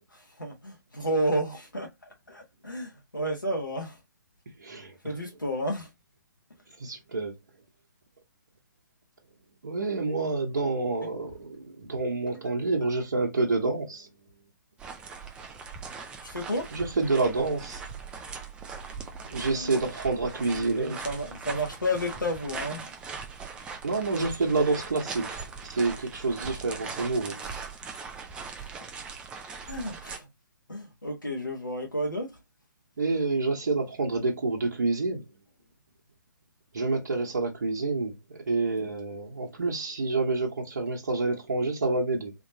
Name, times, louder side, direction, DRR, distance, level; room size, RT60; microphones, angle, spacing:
voice 1, 0.1-4.0 5.0-5.9 11.0-11.1 12.3-12.9 16.2-16.7 19.5-19.9 20.7-22.9 27.4-27.6 28.6-28.7 29.6-30.3 30.7-32.4, equal, 85° left, 1.2 m, -32 dB
voice 2, 4.6-5.0 6.8-7.3 9.6-14.1 16.7-17.8 19.3-21.0 23.8-25.4 25.7-27.4 33.0-35.2 36.7-42.3, right 3 dB, 60° right, 1.1 m, -28 dB
sound 1, 14.8-30.2, right 5 dB, 10° right, 0.4 m, -40 dB
3.5 x 3.1 x 2.7 m
figure-of-eight pair, 130°, 10 cm